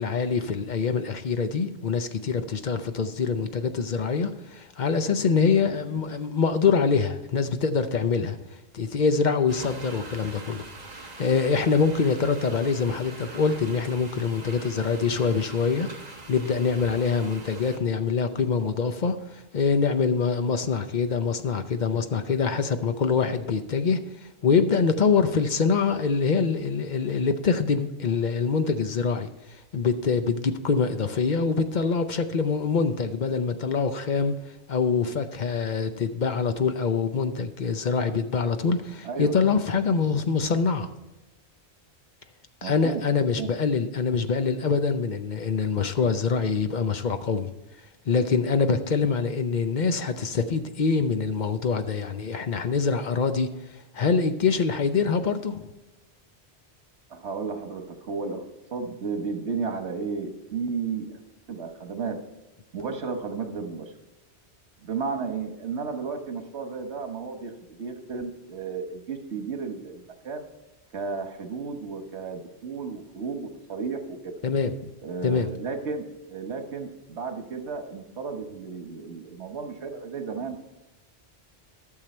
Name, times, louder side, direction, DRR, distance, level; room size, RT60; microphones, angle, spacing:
voice 1, 0.0-8.4 8.7-10.7 11.2-24.0 24.4-29.3 29.7-34.3 34.7-40.9 42.6-47.5 48.1-53.5 53.9-55.6 74.4-74.9 75.2-75.5, left 5 dB, 50° left, 0.8 m, -24 dB
voice 2, 5.6-6.0 39.0-39.4 42.6-43.0 43.4-43.5 57.1-58.4 58.7-61.1 61.5-62.2 62.7-63.9 64.8-70.4 70.9-74.3 75.0-80.6, right 5 dB, 85° right, 1.5 m, -33 dB
sound 1, 9.5-17.8, right 3 dB, 40° right, 1.4 m, -43 dB
12.5 x 6.6 x 4.3 m
omnidirectional pair, 1.1 m